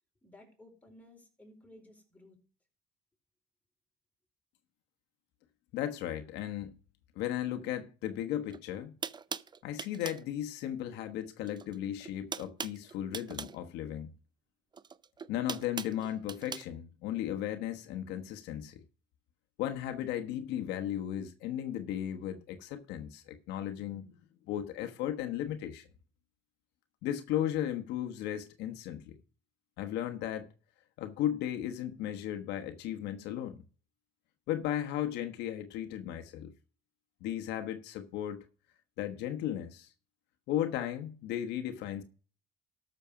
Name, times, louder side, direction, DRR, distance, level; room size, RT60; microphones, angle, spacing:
voice 1, 0.2-2.4, left 1 dB, 10° left, 4.5 m, -56 dB
voice 2, 5.7-6.7 7.1-8.9 9.6-14.1 15.3-18.8 19.6-24.2 24.5-25.9 27.0-29.2 29.8-30.5 31.0-33.6 34.5-36.5 37.2-38.4 39.0-39.9 40.5-42.0, left 11 dB, 90° left, 1.3 m, -35 dB
sound 1, 8.5-8.6 9.0-10.3 11.4-11.8 12.0-13.6 14.7-16.7, right 6 dB, 25° right, 0.5 m, -40 dB
13.0 x 6.7 x 4.9 m
cardioid pair, 110°, 17 cm